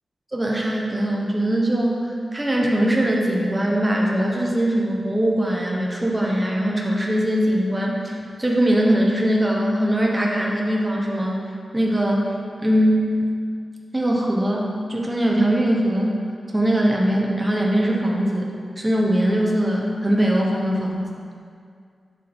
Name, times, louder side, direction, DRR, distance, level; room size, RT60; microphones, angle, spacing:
voice 1, 0.3-11.4 11.7-12.2 12.6-13.0 13.9-16.2 16.5-18.5 18.8-21.0, right 1 dB, 15° right, -2 dB, 1.0 m, -21 dB
7.3 x 7.1 x 3.6 m, 2.2 s
wide cardioid pair, 115°, 0 cm